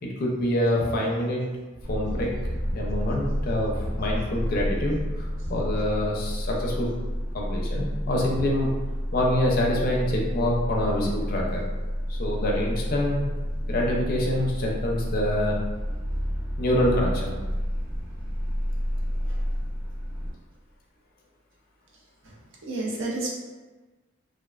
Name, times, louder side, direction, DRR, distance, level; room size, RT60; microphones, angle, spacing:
voice 1, 0.0-1.4 1.8-2.3 2.7-6.9 7.3-8.7 9.1-11.6 12.1-13.2 13.7-15.6 16.6-17.4, left 1 dB, 45° left, -2 dB, 0.4 m, -26 dB
sound 1, 1.8-20.3, equal, 5° right, 0.5 m, -30 dB
voice 2, 22.7-23.3, right 2 dB, 60° right, -3 dB, 0.6 m, -31 dB
2.4 x 2.2 x 2.3 m, 1.3 s
head